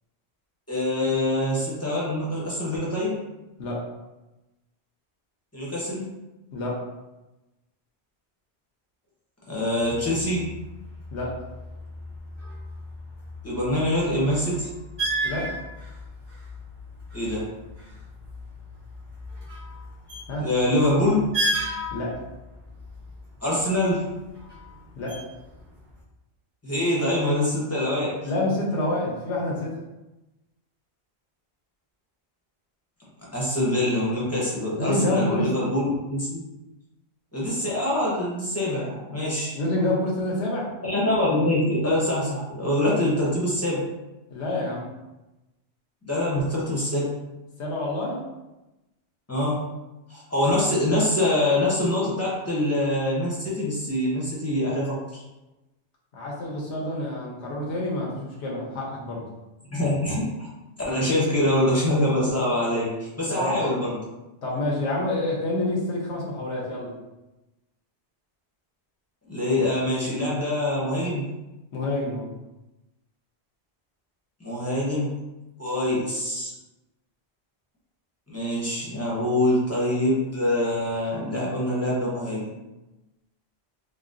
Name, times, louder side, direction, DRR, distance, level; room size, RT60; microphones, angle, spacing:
voice 1, 0.7-3.2 5.5-6.1 9.5-10.5 13.4-14.7 17.1-17.4 20.4-21.2 23.4-24.1 26.6-28.2 33.3-36.4 37.3-39.6 40.8-43.8 46.0-47.1 49.3-49.6 50.1-55.2 59.7-60.5 60.9-64.0 69.3-71.2 74.4-75.1 75.6-76.5 78.3-82.5, left 1 dB, 15° left, -6 dB, 0.7 m, -24 dB
voice 2, 6.5-6.8 11.1-11.4 15.2-15.5 20.3-20.5 21.9-22.2 24.9-25.2 28.2-29.7 34.8-35.5 39.5-40.7 44.3-44.9 47.6-48.2 56.1-59.3 63.3-63.6 64.4-66.9 71.7-72.3, left 1 dB, 85° left, -3 dB, 1.0 m, -27 dB
sound 1, 9.8-26.0, right 1 dB, 40° right, 1.3 m, -35 dB
4.0 x 2.2 x 2.5 m, 1.0 s
omnidirectional pair, 1.1 m